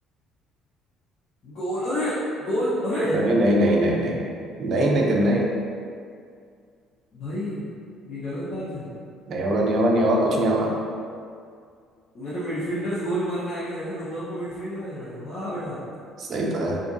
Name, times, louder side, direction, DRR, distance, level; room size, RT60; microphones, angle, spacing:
voice 1, 1.4-3.3 7.1-7.7 8.0-8.9 12.1-15.8, equal, 45° left, -13 dB, 0.7 m, -29 dB
voice 2, 3.1-4.2 4.6-5.5 9.3-10.7 16.2-16.8, right 1 dB, 45° right, -1 dB, 0.4 m, -21 dB
2.7 x 2.5 x 2.5 m, 2.2 s
cardioid pair, 150°, 0 cm